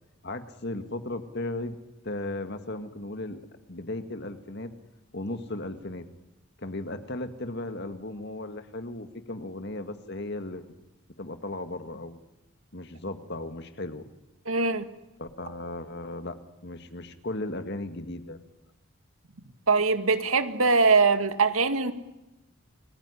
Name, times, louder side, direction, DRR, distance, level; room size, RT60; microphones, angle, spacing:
voice 1, 0.2-1.8 2.0-3.4 3.7-4.7 5.1-6.0 6.6-10.7 11.2-12.2 12.7-14.1 15.2-16.4 16.6-18.4, left 2 dB, 50° left, 8 dB, 2.0 m, -36 dB
voice 2, 14.5-14.8 19.7-21.9, right 4 dB, 85° right, 9 dB, 2.1 m, -22 dB
29.0 x 20.5 x 10.0 m, 0.96 s
head